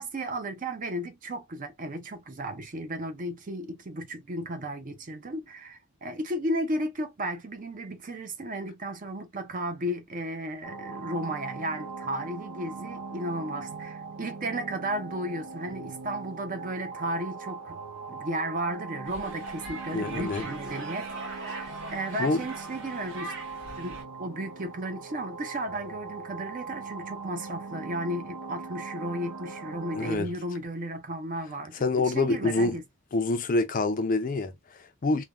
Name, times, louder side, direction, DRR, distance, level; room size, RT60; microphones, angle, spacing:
voice 1, 0.0-17.8 18.1-23.3 23.8-31.8 32.0-32.8, right 1 dB, 35° right, 0.5 m, -34 dB
sound 1, 10.6-30.2, right 4 dB, 90° right, 0.6 m, -40 dB
sound 2, 19.1-24.0, right 2 dB, 55° right, 1.1 m, -42 dB
voice 2, 19.9-20.4 22.2-22.4 30.0-30.3 31.8-32.8 33.1-35.2, left 3 dB, 35° left, 0.4 m, -26 dB
3.3 x 2.2 x 2.4 m
head